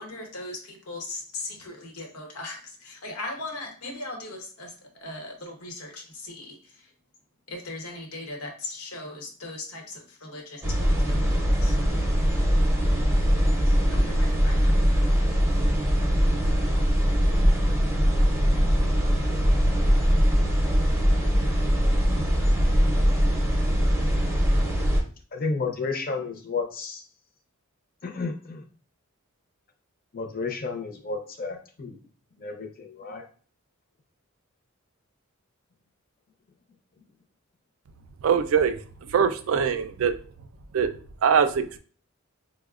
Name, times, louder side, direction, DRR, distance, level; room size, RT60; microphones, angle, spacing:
voice 1, 0.0-6.9 7.5-11.7 13.7-14.7, left 2 dB, 90° left, 0.9 m, -39 dB
sound 1, 10.6-25.0, equal, 10° right, 0.6 m, -21 dB
voice 2, 25.3-27.0 28.0-28.6 30.1-32.0 32.4-33.2, left 4 dB, 45° left, 0.6 m, -32 dB
voice 3, 38.2-38.8 39.1-40.1 40.7-40.9 41.2-41.8, right 7 dB, 65° right, 0.3 m, -22 dB
4.9 x 2.0 x 2.3 m
head